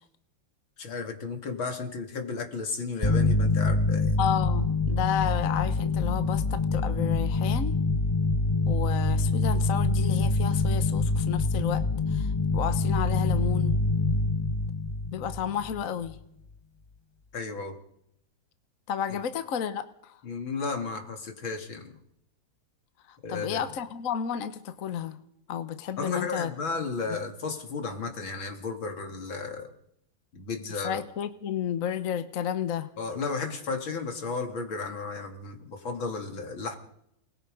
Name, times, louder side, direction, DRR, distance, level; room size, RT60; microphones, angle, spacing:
voice 1, 0.8-4.2 17.3-17.8 20.2-22.0 23.2-23.7 26.0-29.7 30.3-31.0 33.0-36.8, left 4 dB, 85° left, 5 dB, 3.2 m, -34 dB
sound 1, 3.0-16.2, left 3 dB, 20° left, 0.8 m, -25 dB
voice 2, 4.2-7.8 8.7-11.8 12.1-13.8 15.1-16.2 18.9-20.1 23.3-25.2 25.5-26.5 27.1-27.2 30.7-32.9, left 8 dB, 50° left, 11 dB, 1.3 m, -31 dB
28.0 x 20.0 x 5.3 m, 0.76 s
omnidirectional pair, 2.1 m